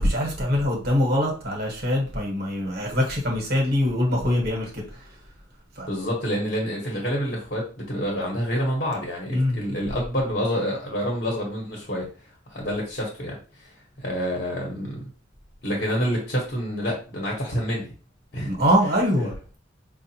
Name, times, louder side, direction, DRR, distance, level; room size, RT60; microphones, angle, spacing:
voice 1, 0.0-5.0 5.8-5.9 9.3-9.6 18.4-19.3, equal, 55° right, 0 dB, 1.2 m, -23 dB
voice 2, 5.9-12.1 12.5-13.4 14.0-15.0 15.6-17.9 18.3-18.5 19.2-19.3, equal, 50° left, -2 dB, 1.1 m, -27 dB
5.0 x 2.4 x 2.8 m, 0.38 s
head